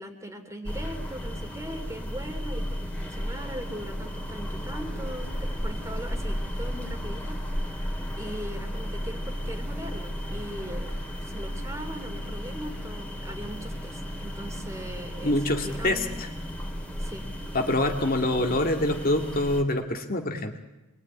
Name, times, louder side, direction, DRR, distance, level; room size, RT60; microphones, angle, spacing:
voice 1, 0.0-10.9 11.2-15.4 15.6-16.1 17.0-17.3, equal, 15° right, 5 dB, 2.9 m, -40 dB
sound 1, 0.6-19.6, equal, 5° left, 3.3 m, -34 dB
voice 2, 15.2-16.3 17.5-20.6, left 1 dB, 40° left, 3 dB, 2.3 m, -25 dB
27.5 x 22.0 x 9.7 m, 1.0 s
head